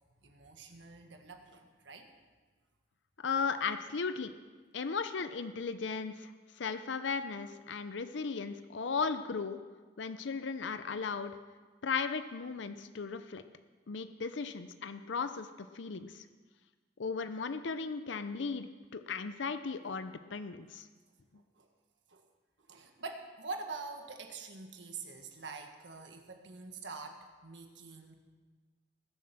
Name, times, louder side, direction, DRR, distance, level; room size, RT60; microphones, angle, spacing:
voice 1, 0.2-2.1 21.5-21.7 22.1-22.3 22.7-28.1, right 4 dB, 70° right, 4 dB, 1.6 m, -45 dB
voice 2, 3.2-4.3 4.7-6.3 6.6-9.6 10.0-11.3 11.8-13.4 13.9-15.5 15.7-16.3 17.0-20.9, left 5 dB, 70° left, 10 dB, 0.6 m, -36 dB
20.5 x 7.4 x 5.9 m, 1.4 s
head